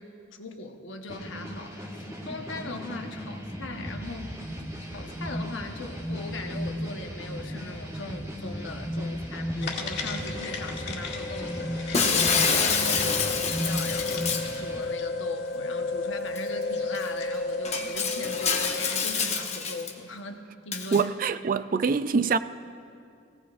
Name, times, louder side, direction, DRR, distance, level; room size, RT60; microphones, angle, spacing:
voice 1, 0.0-4.4 4.9-14.3 14.6-21.1, left 2 dB, 70° left, 1.1 m, -39 dB
sound 1, 1.1-14.8, equal, 15° right, 1.4 m, -35 dB
sound 2, 9.6-19.1, left 3 dB, 55° left, 2.0 m, -33 dB
Shatter, 11.9-14.6 16.4-16.5 16.9-17.1 17.6-19.9 20.7-21.0, left 5 dB, 35° left, 0.9 m, -27 dB
voice 2, 20.9-22.4, right 5 dB, 45° right, 0.3 m, -24 dB
23.0 x 17.0 x 2.5 m
head